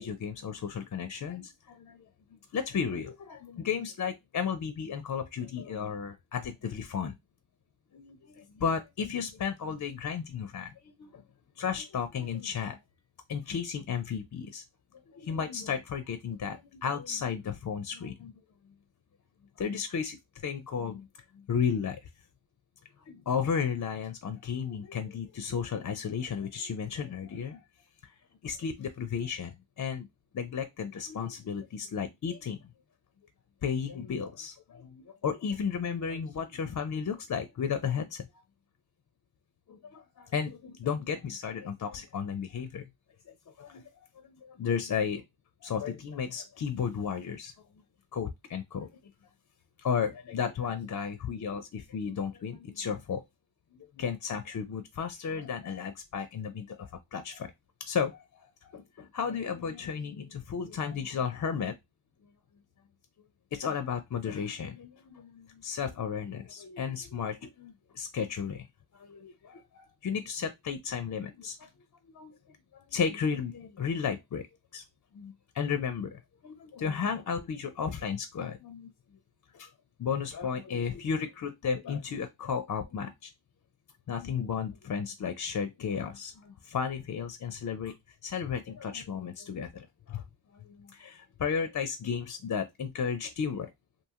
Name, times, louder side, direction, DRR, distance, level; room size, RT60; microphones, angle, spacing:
voice 1, 0.0-2.1 2.5-7.1 7.9-11.2 11.6-12.8 13.3-14.6 15.1-18.4 19.6-20.2 20.4-21.1 21.5-22.0 23.1-27.6 28.0-28.1 28.4-30.1 30.3-32.6 33.6-38.2 39.7-42.9 43.6-43.8 44.2-45.2 45.6-47.5 48.1-48.9 49.8-53.2 53.7-57.5 57.9-58.2 58.7-61.7 63.5-68.6 68.9-71.7 72.1-72.3 72.7-74.5 74.7-74.8 75.1-78.9 79.5-79.7 80.0-83.3 84.1-87.9 88.2-90.2 90.5-93.7, left 6 dB, 40° left, 0.4 m, -34 dB
2.6 x 2.4 x 2.7 m
cardioid pair, 60°, 49 cm